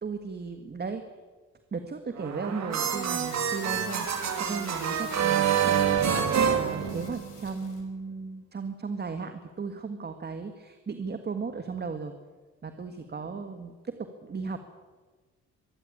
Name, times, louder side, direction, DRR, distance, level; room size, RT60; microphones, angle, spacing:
voice 1, 0.0-1.0 1.7-12.2 12.6-14.6, right 4 dB, 35° right, 7 dB, 1.7 m, -36 dB
sound 1, 2.2-7.5, right 8 dB, 65° right, 2.8 m, -27 dB
sound 2, 2.7-7.9, left 7 dB, 80° left, 5.4 m, -47 dB
23.0 x 14.5 x 8.7 m, 1.4 s
cardioid pair, 90°, 30 cm